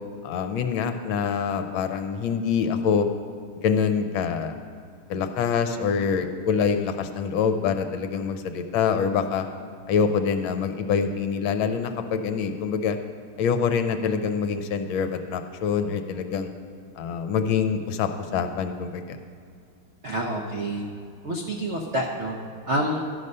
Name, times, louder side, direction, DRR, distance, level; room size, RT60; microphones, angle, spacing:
voice 1, 0.2-3.1 3.6-4.5 5.1-9.5 9.9-13.0 13.4-16.5 17.0-19.2, left 6 dB, 75° left, 8 dB, 1.4 m, -25 dB
voice 2, 20.0-20.8 21.2-22.4 22.7-23.0, right 1 dB, 65° right, -1 dB, 0.6 m, -27 dB
12.0 x 6.5 x 5.4 m, 2.3 s
omnidirectional pair, 2.3 m